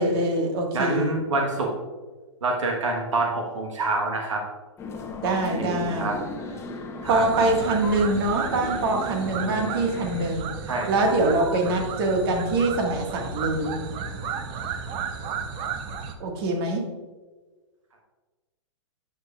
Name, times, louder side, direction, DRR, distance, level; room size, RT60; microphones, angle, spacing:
voice 1, 0.0-1.2 5.2-6.1 7.1-10.5 10.9-13.8 16.2-16.9, right 2 dB, 50° right, 2 dB, 1.8 m, -24 dB
voice 2, 0.7-1.7 2.4-4.4 5.2-6.2 6.5-6.6 7.0-7.2 7.8-8.1 10.7-11.2 11.4-11.5, right 2 dB, 80° right, 0 dB, 1.3 m, -27 dB
sound 1, 4.8-10.3, left 3 dB, 15° left, 0.9 m, -36 dB
sound 2, 7.0-16.1, right 6 dB, 30° right, 0.8 m, -34 dB
9.6 x 7.6 x 2.4 m, 1.3 s
hypercardioid pair, 130°, 16 cm